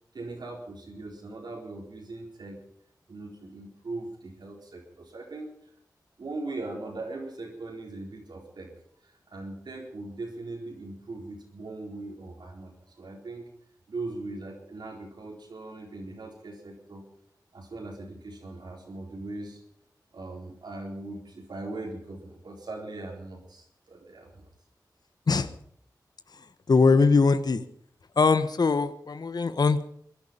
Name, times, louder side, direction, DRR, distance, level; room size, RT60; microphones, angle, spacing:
voice 1, 0.1-2.6 3.1-5.5 6.2-8.7 9.0-13.6 13.9-17.1 17.5-19.6 20.1-24.5, right 2 dB, 90° right, 0 dB, 4.2 m, -40 dB
voice 2, 26.4-27.6 28.2-29.8, left 4 dB, 70° left, 12 dB, 1.0 m, -22 dB
22.0 x 11.0 x 5.5 m, 0.66 s
cardioid pair, 50°, 7 cm